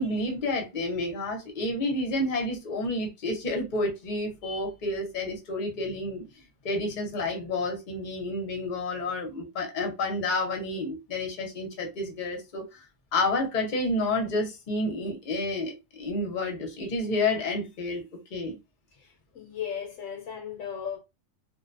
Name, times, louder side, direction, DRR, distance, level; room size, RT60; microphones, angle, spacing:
voice 1, 0.0-6.2 6.6-12.8 13.1-18.0 18.3-18.6, left 2 dB, 40° left, 0.8 m, -30 dB
voice 2, 18.9-21.0, left 8 dB, 75° left, 0.9 m, -36 dB
2.6 x 2.1 x 2.5 m
omnidirectional pair, 1.4 m